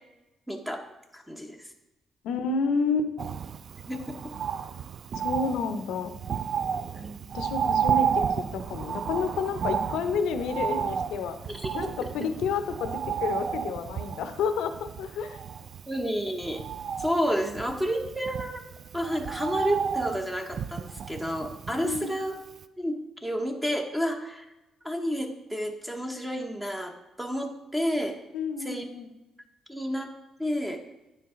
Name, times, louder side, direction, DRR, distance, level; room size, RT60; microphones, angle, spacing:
voice 1, 0.5-0.8 1.1-1.7 3.9-4.3 6.9-7.3 11.5-12.1 15.9-16.6 17.0-18.6 18.9-22.3 22.8-24.5 24.8-28.2 28.6-28.9 29.7-30.1 30.4-30.8, equal, 5° right, 3 dB, 0.8 m, -30 dB
voice 2, 2.2-3.1 5.2-6.1 7.3-11.4 11.7-15.4 21.8-22.2 28.3-29.1, left 5 dB, 85° left, 9 dB, 0.6 m, -30 dB
Bird, 3.2-22.3 22.6-22.7, right 7 dB, 55° right, 0.3 m, -32 dB
9.2 x 4.5 x 3.6 m, 1.0 s
cardioid pair, 90°, 0 cm